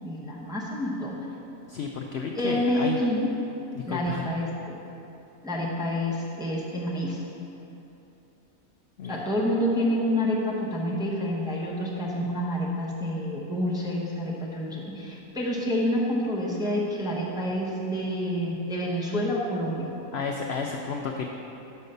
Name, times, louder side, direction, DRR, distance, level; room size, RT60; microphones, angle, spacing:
voice 1, 0.0-1.2 2.4-3.3 3.9-4.7 5.4-7.2 9.1-19.9, equal, 5° right, -4 dB, 0.7 m, -28 dB
voice 2, 1.7-3.0 3.7-4.2 9.0-9.2 20.1-21.3, left 5 dB, 70° left, 1 dB, 0.6 m, -32 dB
5.5 x 5.5 x 6.5 m, 2.9 s
omnidirectional pair, 1.5 m